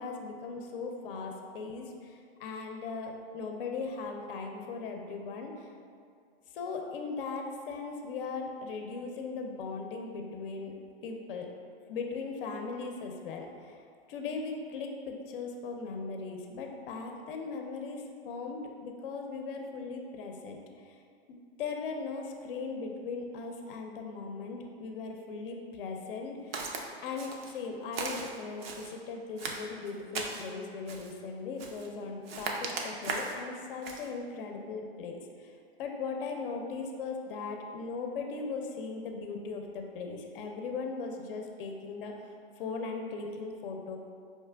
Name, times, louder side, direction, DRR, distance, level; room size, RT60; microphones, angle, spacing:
voice 1, 0.0-5.7 6.5-10.7 11.0-11.5 11.9-13.8 14.1-21.0 21.6-26.6 27.0-44.0, left 4 dB, 60° left, 3 dB, 0.5 m, -38 dB
Walk footsteps, 26.5-26.8 27.2-27.6 27.9-28.9 29.4-30.5 30.9-31.2 31.6-31.9 32.3-33.4 33.8-34.1, right 4 dB, 70° right, 0.6 m, -37 dB
4.7 x 3.0 x 2.2 m, 2.2 s
hypercardioid pair, 130°, 30 cm